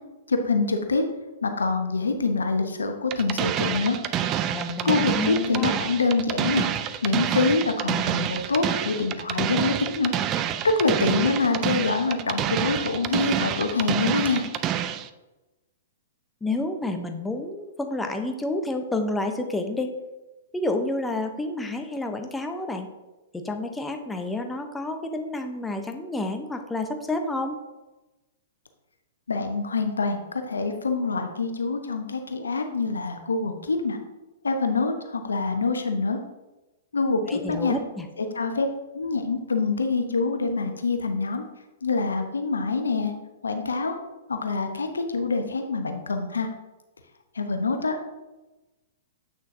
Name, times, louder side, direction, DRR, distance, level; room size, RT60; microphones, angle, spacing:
voice 1, 0.3-1.0 1.4-4.0 4.8-6.7 7.0-10.1 10.8-14.4 29.3-34.0 34.4-36.2 36.9-37.8 38.2-38.7 38.9-41.4 41.8-43.1 43.4-43.9 44.3-46.5 47.3-48.0, left 3 dB, 80° left, 6 dB, 0.9 m, -25 dB
sound 1, 3.1-15.1, right 10 dB, 30° right, 0.4 m, -27 dB
voice 2, 4.5-5.8 16.4-19.9 20.5-22.9 23.3-27.6 37.3-38.1, left 2 dB, 10° left, 5 dB, 0.8 m, -29 dB
8.1 x 6.3 x 2.8 m, 1.1 s
figure-of-eight pair, 110°, 0 cm